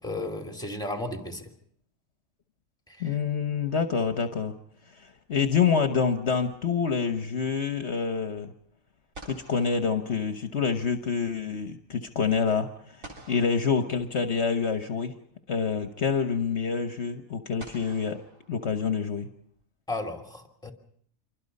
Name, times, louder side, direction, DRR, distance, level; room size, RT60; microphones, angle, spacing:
voice 1, 0.0-1.5 2.9-3.0 19.9-20.7, left 2 dB, 5° left, 4 dB, 3.0 m, -34 dB
voice 2, 3.0-4.5 4.9-8.5 9.2-15.1 15.5-18.2 18.5-19.3, left 6 dB, 60° left, 7 dB, 1.4 m, -27 dB
sound 1, 8.6-8.7 9.1-10.9 13.0-14.6 16.0-16.1 17.6-19.2, right 2 dB, 80° right, 4.1 m, -50 dB
27.5 x 24.0 x 5.4 m, 0.64 s
omnidirectional pair, 1.4 m